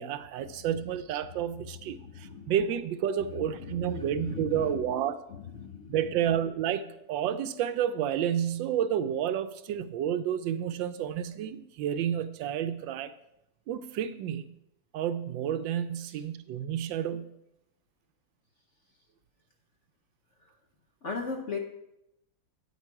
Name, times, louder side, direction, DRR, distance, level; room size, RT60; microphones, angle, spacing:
voice 1, 0.0-5.2 5.9-13.1 13.7-14.4 14.9-17.3, right 9 dB, 75° right, 1.3 m, -30 dB
voice 2, 1.9-2.5 3.3-4.8 5.3-6.0 21.0-21.6, left 5 dB, 60° left, 0.8 m, -38 dB
9.0 x 8.2 x 4.7 m
omnidirectional pair, 2.1 m